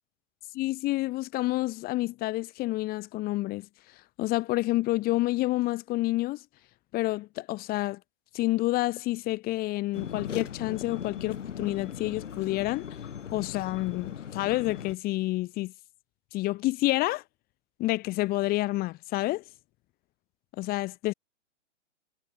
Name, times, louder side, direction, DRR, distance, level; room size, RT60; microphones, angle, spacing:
voice 1, 0.5-3.7 4.2-6.4 6.9-8.0 8.3-12.9 13.3-15.7 16.3-17.2 17.8-19.4 20.6-21.1, left 18 dB, 25° left, 2.1 m, -29 dB
sound 1, 9.9-14.9, left 8 dB, 75° left, 3.3 m, -38 dB
hypercardioid pair, 140°, 37 cm